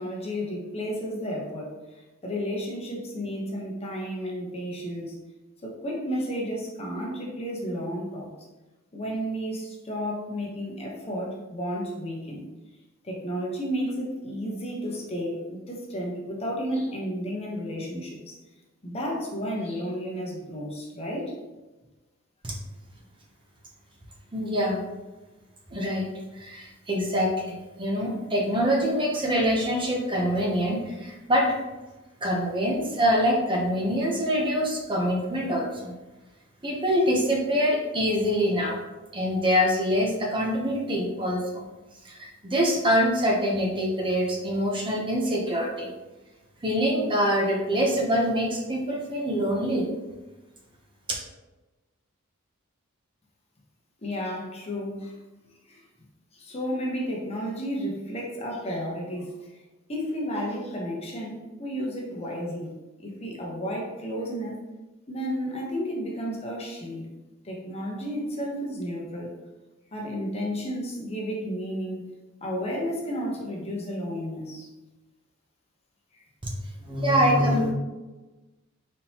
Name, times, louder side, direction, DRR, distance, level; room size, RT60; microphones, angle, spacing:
voice 1, 0.0-5.2 5.6-8.3 8.9-12.5 13.0-18.3 18.8-21.4 54.0-55.2 55.7-55.8 56.3-59.6 59.9-62.7 63.0-64.6 65.1-67.1 67.4-69.3 69.9-72.0 72.4-74.7 76.1-76.2, equal, 30° left, -2 dB, 0.9 m, -32 dB
voice 2, 24.3-24.8 25.7-26.0 26.4-31.5 32.2-35.9 36.6-38.8 39.1-41.6 42.0-45.9 46.6-49.8 76.4-76.5 76.8-77.7, equal, 25° right, -2 dB, 0.7 m, -25 dB
4.2 x 3.7 x 2.8 m, 1.1 s
head